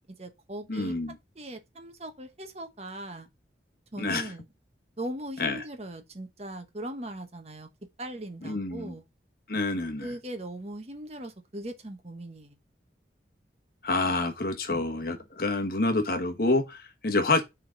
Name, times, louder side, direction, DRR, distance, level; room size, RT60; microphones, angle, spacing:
voice 1, 0.0-0.9 1.3-3.3 3.9-4.5 5.0-7.7 8.0-9.0 10.0-12.6, right 1 dB, 35° right, 1.2 m, -39 dB
voice 2, 0.7-1.2 4.0-4.3 5.4-5.6 8.4-8.9 9.5-10.1 13.8-17.4, left 2 dB, 50° left, 1.2 m, -27 dB
6.2 x 3.8 x 6.2 m
head